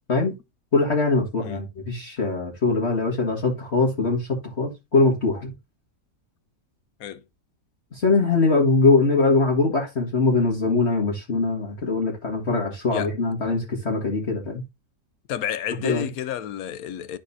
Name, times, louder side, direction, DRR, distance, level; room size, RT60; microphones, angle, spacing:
voice 1, 0.7-5.5 7.9-14.6 15.8-16.1, left 3 dB, 40° left, 1.9 m, -22 dB
voice 2, 15.3-17.2, left 10 dB, 70° left, 0.9 m, -30 dB
12.5 x 4.2 x 2.7 m
omnidirectional pair, 1.8 m